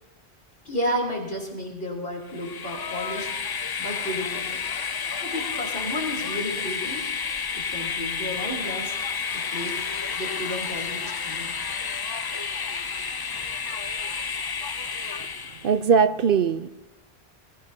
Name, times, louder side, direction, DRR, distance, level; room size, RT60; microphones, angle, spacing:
voice 1, 0.7-3.3 3.8-4.6 5.2-7.0 7.5-9.0 9.3-9.8 10.1-11.6, equal, 60° left, 3.6 m, -32 dB
Train, 2.3-15.8, left 5 dB, 40° left, 0.3 m, -31 dB
sound 1, 5.5-6.1 6.7-7.2 7.9-8.4 10.0-10.5, right 3 dB, 30° right, 3.6 m, -52 dB
voice 2, 15.6-16.7, right 6 dB, 60° right, 0.8 m, -20 dB
20.5 x 16.5 x 2.8 m
omnidirectional pair, 1.1 m